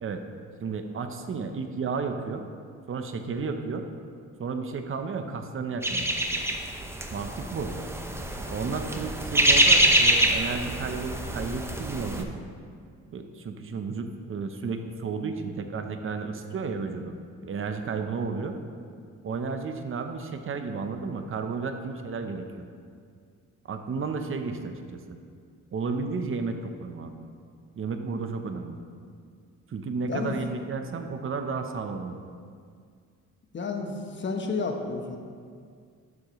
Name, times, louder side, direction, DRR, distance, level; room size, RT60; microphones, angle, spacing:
voice 1, 0.6-2.4 2.9-3.8 4.4-6.4 7.1-7.7 8.5-12.3 13.1-17.1 17.4-18.5 19.2-22.6 23.6-25.2 25.7-27.1 27.8-28.8 29.7-32.3, right 4 dB, 45° right, 6 dB, 0.9 m, -32 dB
sound 1, 5.8-12.2, right 1 dB, 10° right, 0.8 m, -25 dB
voice 2, 33.5-35.2, left 4 dB, 40° left, 3 dB, 1.1 m, -31 dB
12.0 x 7.3 x 3.2 m, 2.1 s
cardioid pair, 90°, 30 cm